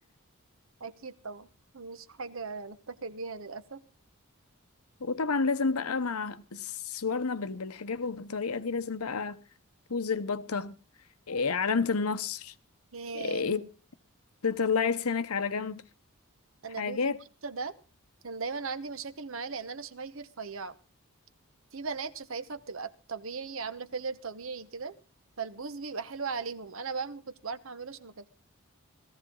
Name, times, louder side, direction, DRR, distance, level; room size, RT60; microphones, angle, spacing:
voice 1, 0.8-1.5 1.7-3.8 12.9-13.7 16.6-17.7 18.2-20.7 21.7-25.0 25.4-28.3, right 4 dB, 65° right, 1.0 m, -38 dB
voice 2, 5.0-9.4 9.9-10.8 11.3-12.5 13.1-13.6 14.4-15.8 16.8-17.2, left 5 dB, 90° left, 1.0 m, -30 dB
17.0 x 14.5 x 3.9 m
head